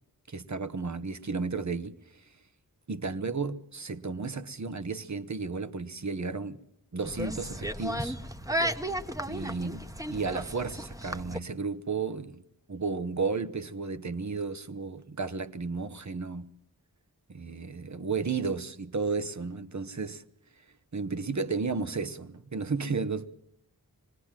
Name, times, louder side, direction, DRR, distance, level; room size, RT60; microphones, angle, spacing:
voice 1, 0.3-1.9 2.9-6.6 6.9-8.2 9.3-9.8 10.1-12.4 12.7-16.5 17.3-20.2 20.9-23.4, right 4 dB, 45° right, 1.1 m, -33 dB
sound 1, 7.0-11.4, equal, 10° right, 1.1 m, -34 dB
25.5 x 20.0 x 7.5 m
wide cardioid pair, 45°, 38 cm